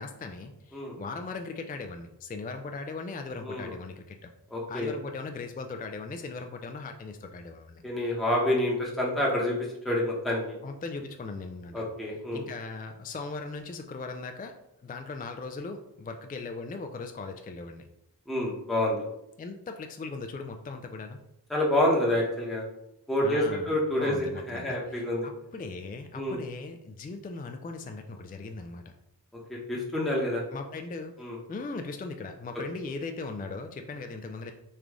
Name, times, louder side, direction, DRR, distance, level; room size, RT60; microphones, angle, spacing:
voice 1, 0.0-4.3 4.7-7.8 10.6-11.8 12.3-14.5 14.8-17.8 19.4-21.2 23.2-25.1 25.5-28.9 30.5-31.1 31.5-34.5, left 3 dB, 25° left, 5 dB, 0.3 m, -38 dB
voice 2, 3.4-3.7 4.5-4.9 7.8-9.6 9.8-10.6 11.7-12.5 18.3-19.0 21.5-22.6 23.1-25.3 26.1-26.4 29.5-30.4 31.2-31.4, left 1 dB, ahead, -4 dB, 0.9 m, -28 dB
3.2 x 2.4 x 3.6 m, 0.83 s
cardioid pair, 40°, 41 cm